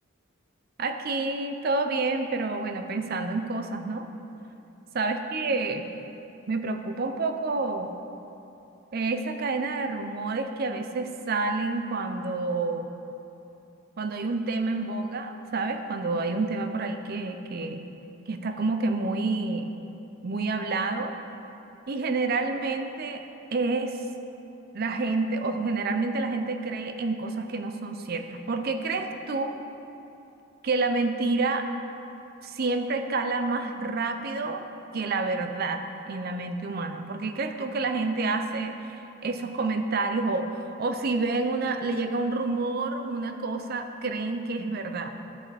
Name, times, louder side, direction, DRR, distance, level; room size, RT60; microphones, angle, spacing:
voice 1, 0.8-4.1 4.9-5.8 6.5-7.9 8.9-12.9 14.0-17.9 18.3-19.7 20.2-21.2 21.9-23.2 23.5-24.0 24.7-29.6 30.6-31.7 32.4-34.6 34.9-45.2, right 3 dB, 50° right, 7 dB, 0.5 m, -28 dB
12.5 x 4.9 x 4.3 m, 2.9 s
head